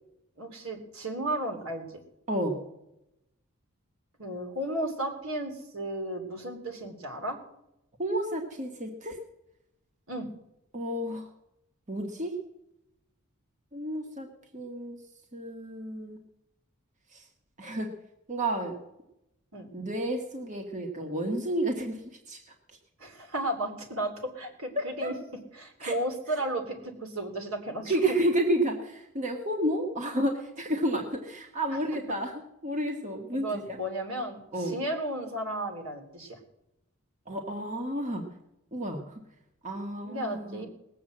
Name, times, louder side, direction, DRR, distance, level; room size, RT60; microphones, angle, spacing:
voice 1, 0.4-2.0 4.2-7.4 10.1-10.3 19.5-19.7 23.0-25.1 25.5-27.9 31.7-31.8 33.3-36.4 40.0-40.7, right 1 dB, 80° right, 3 dB, 3.1 m, -34 dB
voice 2, 8.0-9.2 10.7-11.3 11.9-12.3 13.7-14.3 14.5-15.0 15.3-16.2 17.1-17.2 17.6-17.9 18.3-18.7 19.7-22.0 22.3-22.4 25.0-25.1 25.8-25.9 27.9-33.8 34.5-34.8 37.3-38.2 38.7-39.2 39.6-40.7, right 1 dB, 35° right, 3 dB, 1.6 m, -31 dB
19.5 x 7.5 x 7.8 m, 0.86 s
head